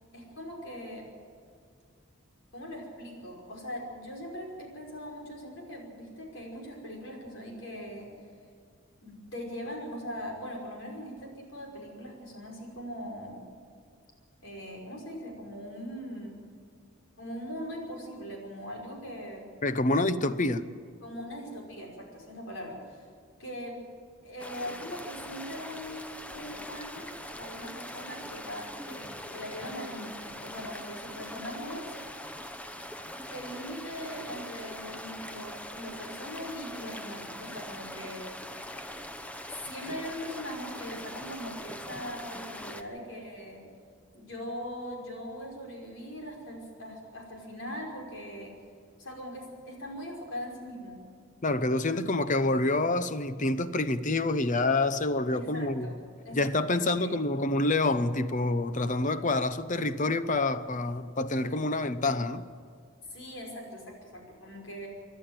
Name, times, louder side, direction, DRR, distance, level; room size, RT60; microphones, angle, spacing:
voice 1, 0.1-1.1 2.5-8.2 9.0-13.5 14.4-16.4 17.1-19.4 21.0-23.0 23.4-23.9 24.2-31.8 33.3-38.6 39.5-43.6 44.1-48.5 49.0-51.0 55.3-57.1 63.1-64.9, equal, 70° left, 5.5 m, -41 dB
voice 2, 19.6-20.7 51.4-55.9 56.3-62.5, left 2 dB, 40° left, 0.8 m, -27 dB
sound 1, 24.4-42.8, left 1 dB, 5° left, 0.9 m, -42 dB
27.0 x 11.5 x 9.0 m
head